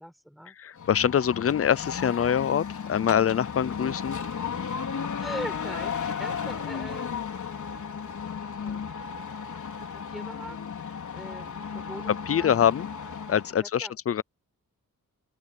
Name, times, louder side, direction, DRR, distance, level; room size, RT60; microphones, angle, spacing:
voice 1, 0.0-0.6 5.2-7.3 8.6-8.9 9.8-12.7 13.6-14.0, equal, ahead, 4.5 m, -42 dB
voice 2, 0.6-2.6 2.9-4.2 12.3-12.9 13.3-14.2, left 8 dB, 45° left, 0.5 m, -24 dB
sound 1, 0.8-13.6, left 6 dB, 60° left, 4.2 m, -34 dB
open air
wide cardioid pair, 170°, 34 cm